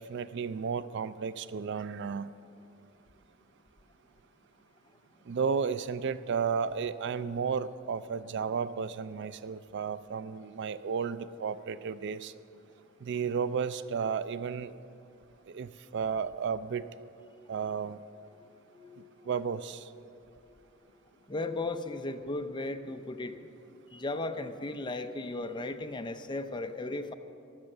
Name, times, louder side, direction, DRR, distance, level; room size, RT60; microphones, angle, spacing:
voice 1, 0.0-2.3 5.3-12.3 13.0-14.7 15.5-16.8 17.5-18.0 19.3-19.8, right 6 dB, 60° right, 15 dB, 0.4 m, -33 dB
voice 2, 18.7-19.3 20.5-20.6 20.8-20.9 21.3-23.4 23.9-27.1, left 2 dB, 20° left, 8 dB, 0.6 m, -36 dB
15.0 x 11.0 x 6.6 m, 2.7 s
head